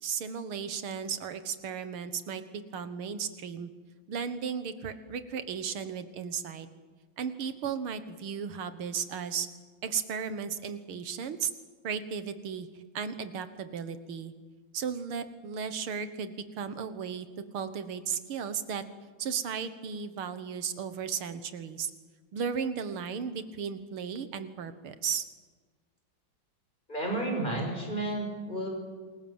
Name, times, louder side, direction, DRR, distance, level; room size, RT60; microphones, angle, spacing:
voice 1, 0.0-3.7 4.1-6.7 7.2-9.5 9.8-11.5 11.8-12.7 12.9-14.3 14.7-17.3 17.5-18.8 19.2-21.9 22.3-25.2, right 7 dB, 90° right, 11 dB, 2.3 m, -35 dB
voice 2, 26.9-28.7, right 1 dB, 20° left, 1 dB, 6.2 m, -32 dB
28.0 x 21.5 x 7.4 m, 1.4 s
omnidirectional pair, 2.3 m